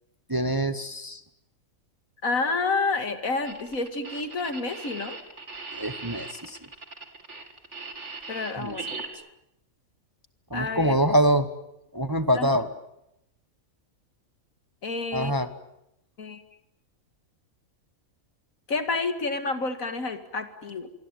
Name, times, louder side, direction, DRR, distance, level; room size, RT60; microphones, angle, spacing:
voice 1, 0.3-1.2 5.7-6.6 8.6-8.8 10.5-11.5 11.9-12.7 15.1-15.5, equal, 15° right, 11 dB, 1.1 m, -24 dB
voice 2, 2.2-5.2 8.3-8.9 10.5-11.0 12.3-12.5 14.8-15.3 16.2-16.4 18.7-20.9, left 3 dB, 75° left, 9 dB, 2.6 m, -29 dB
sound 1, 3.4-9.1, right 3 dB, 55° right, 3.2 m, -39 dB
26.0 x 23.5 x 9.4 m, 0.82 s
omnidirectional pair, 1.4 m